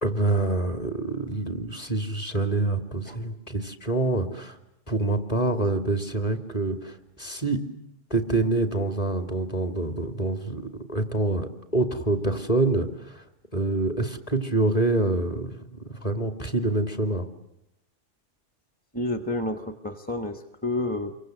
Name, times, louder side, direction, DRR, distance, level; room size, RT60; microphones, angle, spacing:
voice 1, 0.0-4.6 4.9-7.6 8.1-13.2 13.5-17.2, right 2 dB, 30° left, 7 dB, 2.7 m, -26 dB
voice 2, 18.9-21.2, left 2 dB, 10° left, 8 dB, 1.2 m, -30 dB
28.5 x 24.0 x 7.9 m, 0.85 s
omnidirectional pair, 1.3 m